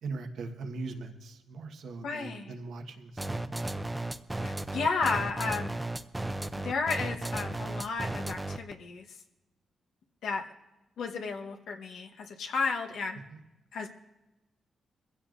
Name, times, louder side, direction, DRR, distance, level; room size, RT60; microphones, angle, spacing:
voice 1, 0.0-3.6 13.3-13.4, right 3 dB, 80° right, 5 dB, 1.3 m, -40 dB
voice 2, 2.0-2.5 4.4-5.7 6.6-9.2 10.2-10.4 11.0-13.2 13.7-13.9, left 4 dB, 85° left, 2 dB, 1.1 m, -33 dB
sound 1, 3.2-8.7, right 2 dB, 15° right, 0.6 m, -34 dB
23.0 x 15.5 x 2.6 m, 1.0 s
cardioid pair, 85°, 0 cm